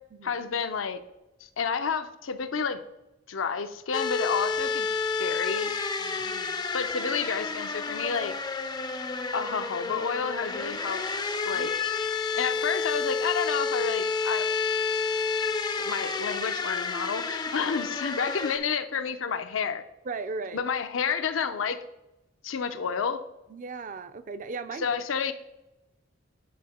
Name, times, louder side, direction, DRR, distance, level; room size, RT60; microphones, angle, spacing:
voice 1, 0.2-1.0 1.6-2.8 3.3-4.9 5.2-5.7 6.7-8.3 9.3-11.0 11.5-11.7 12.3-14.5 15.8-19.8 20.5-21.8 22.4-23.2 24.8-25.3, left 6 dB, 75° left, 9 dB, 0.6 m, -30 dB
sound 1, 3.9-18.6, left 4 dB, 20° left, 0.4 m, -30 dB
voice 2, 6.0-6.6 11.5-11.7 20.1-20.6 23.5-24.9, right 4 dB, 40° right, 12 dB, 0.4 m, -37 dB
8.5 x 4.5 x 4.2 m, 0.96 s
head